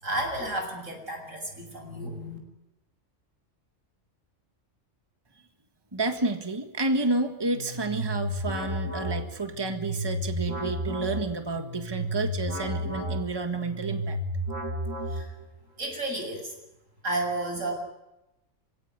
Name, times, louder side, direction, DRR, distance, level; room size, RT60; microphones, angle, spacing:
voice 1, 0.0-2.4 15.1-15.3 15.8-16.5 17.0-17.7, right 1 dB, 90° right, 3 dB, 7.6 m, -32 dB
voice 2, 5.9-14.2, right 2 dB, 20° right, 6 dB, 1.8 m, -30 dB
sound 1, 7.5-15.6, equal, 60° right, 6.9 m, -32 dB
27.5 x 17.0 x 9.7 m, 0.95 s
omnidirectional pair, 1.3 m